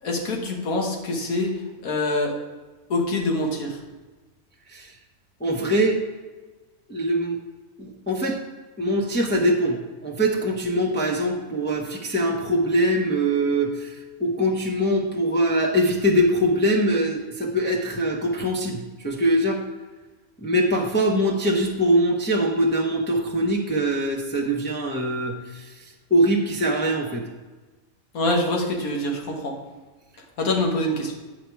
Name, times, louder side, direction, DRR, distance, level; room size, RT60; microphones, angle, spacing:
voice 1, 0.0-2.4 2.9-3.8 28.1-29.6 30.4-31.1, left 2 dB, 85° left, 1 dB, 1.7 m, -25 dB
voice 2, 5.4-6.0 6.9-7.4 7.8-8.4 8.8-19.6 20.4-25.8 26.1-27.2, equal, 10° left, -1 dB, 0.7 m, -23 dB
8.5 x 5.1 x 4.5 m, 1.2 s
omnidirectional pair, 1.5 m